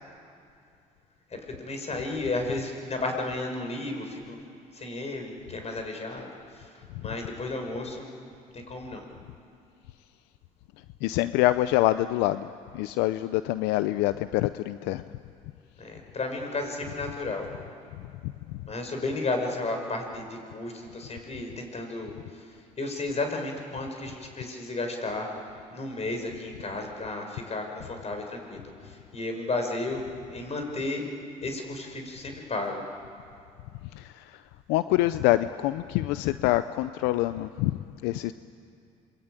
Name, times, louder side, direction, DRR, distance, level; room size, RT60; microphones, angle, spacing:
voice 1, 1.6-4.4 4.7-6.3 6.6-6.7 7.0-8.1 8.5-9.1 15.8-17.5 18.6-22.1 22.8-25.3 25.7-30.0 30.3-31.0 31.4-32.8, left 2 dB, 40° left, 4 dB, 5.9 m, -33 dB
voice 2, 11.0-12.5 12.7-15.0 18.2-18.3 33.9-34.4 34.7-37.8 38.0-38.3, left 16 dB, 80° left, 13 dB, 0.6 m, -25 dB
27.0 x 22.5 x 9.2 m, 2.5 s
supercardioid pair, 70°, 17 cm